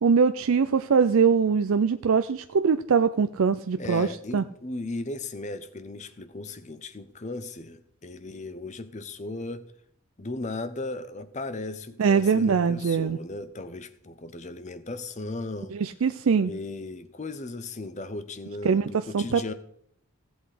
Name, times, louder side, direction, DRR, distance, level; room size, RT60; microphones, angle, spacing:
voice 1, 0.0-4.1 4.3-4.4 12.0-13.2 15.7-16.5 18.6-19.5, right 5 dB, 85° right, 0.5 m, -22 dB
voice 2, 3.8-9.7 10.2-15.7 16.4-19.5, left 2 dB, 35° left, 0.8 m, -36 dB
16.0 x 8.0 x 5.0 m
head